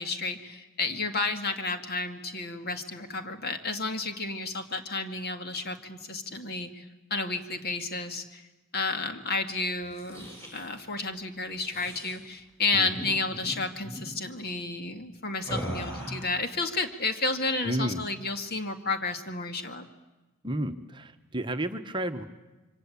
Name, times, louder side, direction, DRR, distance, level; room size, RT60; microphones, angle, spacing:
voice 1, 0.0-6.8 7.1-8.4 8.7-19.9, left 3 dB, 45° left, 7 dB, 2.1 m, -31 dB
sound 1, 9.8-10.7 11.6-12.2 12.8-13.1 13.3-13.5 13.8-14.1 15.4-16.4, equal, 15° left, 6.7 m, -38 dB
voice 2, 17.6-18.0 20.4-22.2, right 1 dB, 20° right, 6 dB, 1.1 m, -31 dB
26.0 x 24.5 x 8.6 m, 1.1 s
head